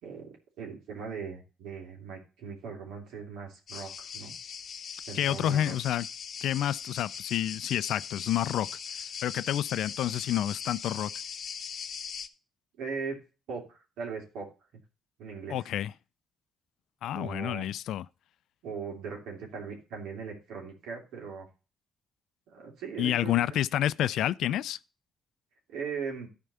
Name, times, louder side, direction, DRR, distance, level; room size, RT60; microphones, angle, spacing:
voice 1, 0.0-4.3 5.0-5.7 12.8-13.2 13.5-14.5 15.2-15.7 17.1-17.7 18.6-21.5 22.5-23.6 25.7-26.3, right 5 dB, 90° right, 2.9 m, -39 dB
sound 1, 3.7-12.3, left 7 dB, 55° left, 0.8 m, -40 dB
voice 2, 5.1-6.1 6.4-8.7 9.2-11.1 15.5-15.9 17.0-18.1 23.0-24.8, left 12 dB, 80° left, 0.4 m, -29 dB
11.0 x 4.5 x 6.7 m
cardioid pair, 90°, 0 cm